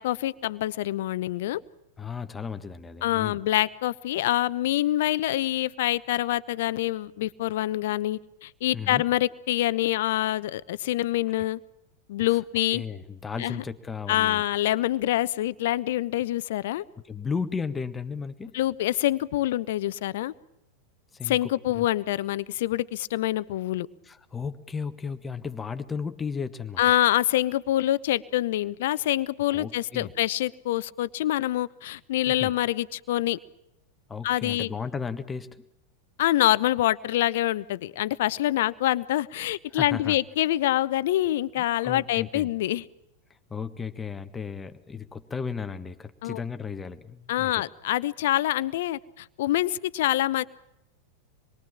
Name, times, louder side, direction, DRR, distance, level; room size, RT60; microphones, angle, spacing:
voice 1, 0.0-1.6 3.0-11.6 12.1-12.8 13.4-13.6 14.1-16.8 18.5-20.3 21.2-23.9 26.8-33.4 34.2-34.7 36.2-42.8 46.2-46.4 47.3-50.4, left 14 dB, 55° left, 18 dB, 0.9 m, -26 dB
voice 2, 2.0-3.4 8.7-9.0 12.7-14.4 17.0-18.6 21.1-21.9 24.0-26.9 29.5-30.1 32.3-32.5 34.1-35.6 39.7-40.2 41.6-42.5 43.5-47.5, left 5 dB, 15° left, 10 dB, 1.5 m, -34 dB
27.5 x 23.0 x 7.5 m, 0.86 s
figure-of-eight pair, 90°, 0 cm